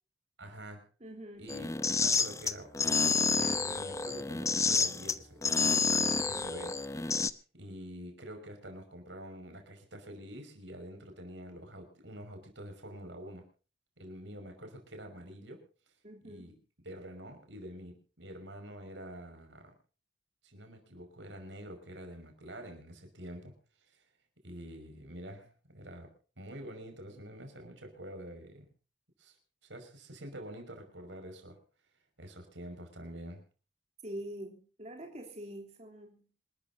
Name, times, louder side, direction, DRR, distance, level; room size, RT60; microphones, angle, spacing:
voice 1, 0.4-0.8 1.4-7.2 7.5-13.4 14.0-15.6 16.2-16.5 16.8-19.7 20.4-23.5 23.9-24.0 24.4-26.1 26.4-28.7 29.2-29.4 29.6-31.6 32.2-33.4, equal, 90° right, 5 dB, 5.6 m, -47 dB
voice 2, 1.0-1.6 16.0-16.6 34.0-36.3, right 1 dB, 40° right, 1 dB, 3.2 m, -45 dB
sound 1, 1.5-7.3, left 4 dB, 15° left, 0.8 m, -29 dB
27.0 x 13.5 x 2.7 m, 0.37 s
head